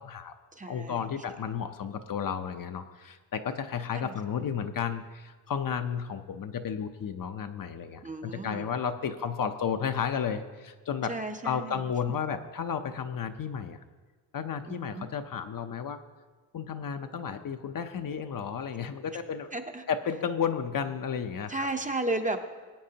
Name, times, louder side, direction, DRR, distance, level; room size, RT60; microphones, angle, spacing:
voice 1, 0.0-0.3 0.7-11.1 11.4-13.8 14.3-16.0 16.5-19.5 19.9-21.6, left 7 dB, 50° left, 8 dB, 0.7 m, -33 dB
voice 2, 0.5-1.1 3.9-4.1 8.0-8.7 11.1-11.8 14.7-15.1 19.5-19.8 21.5-22.4, right 2 dB, 20° right, 5 dB, 0.6 m, -34 dB
20.0 x 9.0 x 2.8 m, 1.4 s
wide cardioid pair, 135°, 43 cm